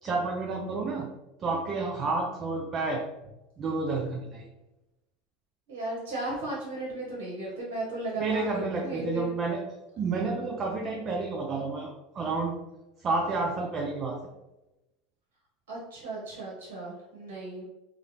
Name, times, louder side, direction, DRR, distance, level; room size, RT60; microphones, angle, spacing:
voice 1, 0.0-1.1 1.4-3.0 3.6-4.5 8.2-9.6 10.0-12.6 13.0-14.2, right 3 dB, 35° right, 1 dB, 0.4 m, -30 dB
voice 2, 5.7-9.2 15.7-17.6, right 2 dB, 75° right, -4 dB, 0.8 m, -35 dB
2.4 x 2.0 x 3.0 m, 0.98 s
hypercardioid pair, 100°, 0 cm